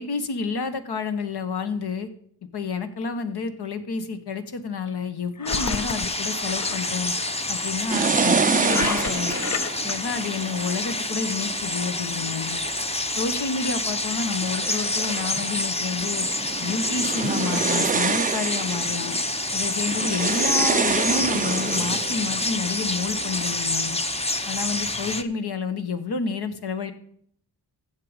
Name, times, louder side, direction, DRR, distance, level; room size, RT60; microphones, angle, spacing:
voice 1, 0.0-2.1 2.5-7.1 7.5-9.4 9.8-12.6 13.2-16.3 16.6-19.1 19.5-24.0 24.5-26.9, left 5 dB, 70° left, 9 dB, 1.4 m, -29 dB
Engine, 5.4-6.9 8.6-9.9, left 6 dB, 45° left, 0.7 m, -30 dB
sound 1, 5.5-25.2, left 2 dB, 15° left, 0.8 m, -28 dB
sound 2, 7.9-12.6 13.2-13.8 14.2-23.4, right 5 dB, 20° right, 0.4 m, -28 dB
14.5 x 7.8 x 5.1 m, 0.65 s
wide cardioid pair, 100°, 41 cm